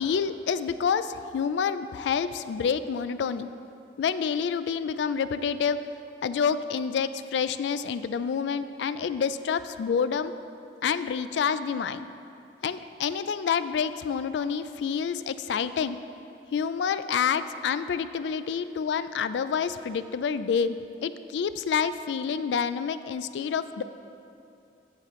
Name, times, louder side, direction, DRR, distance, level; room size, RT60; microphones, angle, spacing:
voice 1, 0.0-3.5 4.0-5.8 6.2-10.3 10.8-12.1 12.6-16.0 16.5-20.7 21.0-23.8, left 6 dB, 80° left, 13 dB, 0.3 m, -28 dB
14.5 x 5.8 x 3.0 m, 2.7 s
head